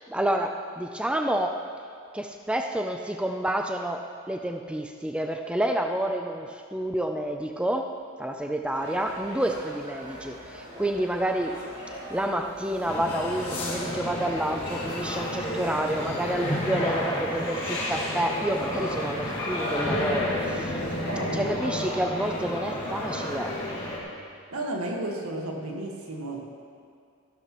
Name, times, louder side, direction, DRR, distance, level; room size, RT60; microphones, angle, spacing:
voice 1, 0.1-1.6 2.1-11.6 12.1-20.8 21.3-23.6, right 1 dB, 5° right, 4 dB, 0.3 m, -29 dB
sound 1, 8.7-21.1, equal, 30° right, 3.0 m, -43 dB
sound 2, 12.9-24.0, left 1 dB, 25° left, 2.2 m, -31 dB
voice 2, 21.0-21.8 24.5-26.4, right 1 dB, 85° right, 0 dB, 1.6 m, -33 dB
14.5 x 12.0 x 3.0 m, 2.3 s
head